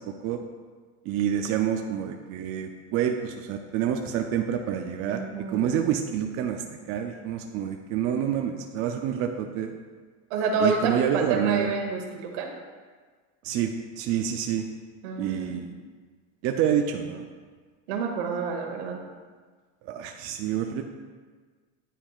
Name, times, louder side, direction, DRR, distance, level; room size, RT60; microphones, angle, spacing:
voice 1, 0.1-0.4 1.1-5.2 5.5-9.7 10.6-11.7 13.4-14.6 15.2-15.7 16.4-17.2 19.9-20.8, right 9 dB, 40° right, 4 dB, 0.4 m, -28 dB
voice 2, 5.1-5.7 10.3-12.5 15.0-15.6 17.9-19.0, right 4 dB, 70° right, 2 dB, 1.2 m, -28 dB
9.9 x 4.3 x 2.4 m, 1.5 s
supercardioid pair, 125°, 35 cm